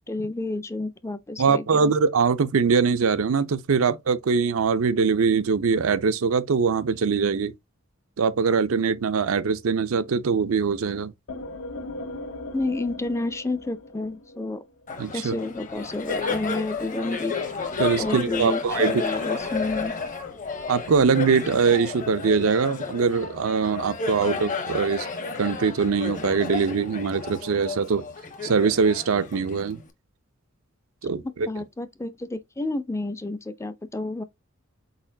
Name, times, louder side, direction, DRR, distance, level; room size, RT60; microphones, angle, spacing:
voice 1, 0.1-1.9 12.5-14.6 15.1-17.3 18.0-19.9 31.2-34.2, left 2 dB, 15° left, 0.4 m, -30 dB
voice 2, 1.4-7.5 8.2-11.1 15.0-15.4 17.8-19.0 20.7-25.1 25.4-28.1 28.4-29.8 31.0-31.5, right 5 dB, 80° right, 0.5 m, -22 dB
sound 1, 11.3-14.9, left 2 dB, 75° left, 0.8 m, -38 dB
Laughter, 14.9-29.9, left 5 dB, 40° left, 0.8 m, -32 dB
4.4 x 4.1 x 2.6 m
head